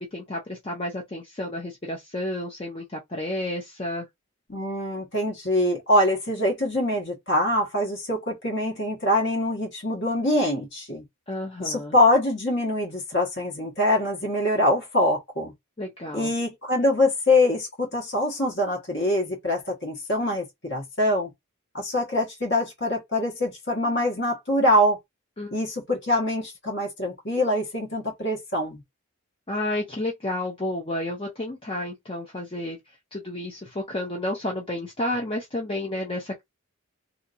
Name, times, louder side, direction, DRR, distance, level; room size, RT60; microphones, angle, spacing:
voice 1, 0.0-4.1 11.3-11.9 15.8-16.3 25.4-25.5 29.5-32.8 33.1-36.4, left 1 dB, 25° left, 0.6 m, -31 dB
voice 2, 4.5-11.0 11.6-15.5 16.1-21.3 21.7-25.0 25.5-28.8, left 1 dB, 50° left, 1.4 m, -24 dB
2.8 x 2.7 x 2.5 m
head